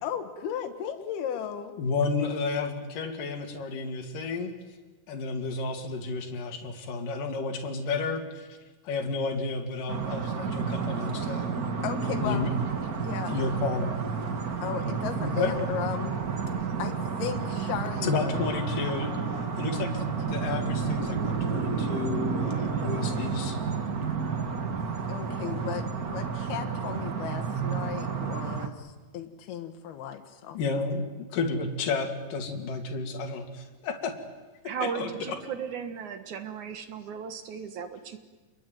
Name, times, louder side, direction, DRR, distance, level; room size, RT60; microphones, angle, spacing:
voice 1, 0.0-1.7 11.8-12.5 13.0-13.3 14.6-16.2 16.8-18.4 19.7-19.9 25.1-30.6, left 9 dB, 80° left, 5 dB, 3.4 m, -35 dB
voice 2, 1.8-4.5 5.1-8.5 8.8-11.5 12.2-12.5 13.3-13.9 15.2-15.5 18.0-19.1 19.6-19.9 20.3-23.6 25.4-25.5 30.5-31.1 31.3-34.1 34.6-35.4, left 4 dB, 60° left, 3 dB, 4.1 m, -31 dB
sound 1, 9.9-28.7, right 5 dB, 80° right, 0.8 m, -31 dB
sound 2, 18.3-25.2, right 2 dB, 30° right, 5.6 m, -43 dB
voice 3, 34.6-38.2, right 6 dB, 60° right, 9 dB, 2.7 m, -36 dB
28.5 x 22.0 x 9.3 m, 1.3 s
omnidirectional pair, 4.4 m